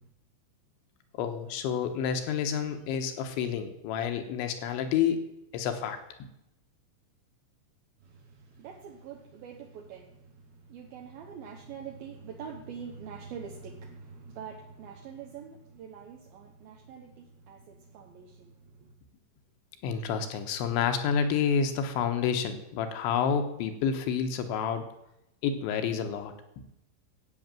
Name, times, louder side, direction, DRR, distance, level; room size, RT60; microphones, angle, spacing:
voice 1, 1.2-5.3 5.5-6.0 19.8-24.9 25.4-26.6, left 7 dB, 75° left, 7 dB, 3.3 m, -29 dB
voice 2, 8.6-10.2 10.7-18.5 18.8-18.9, right 6 dB, 70° right, 1 dB, 2.4 m, -44 dB
13.5 x 8.5 x 7.6 m, 0.84 s
omnidirectional pair, 5.7 m